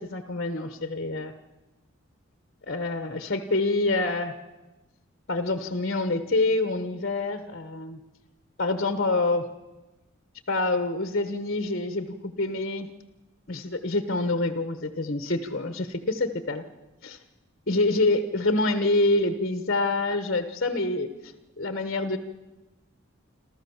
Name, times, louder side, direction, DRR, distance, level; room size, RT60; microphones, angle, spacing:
voice 1, 0.0-1.3 2.7-4.3 5.3-8.0 8.6-9.4 10.5-12.1 12.4-12.9 13.5-16.6 17.0-17.2 17.7-21.1 21.6-22.2, left 2 dB, 50° left, 9 dB, 1.2 m, -26 dB
28.5 x 13.5 x 7.2 m, 1.1 s
head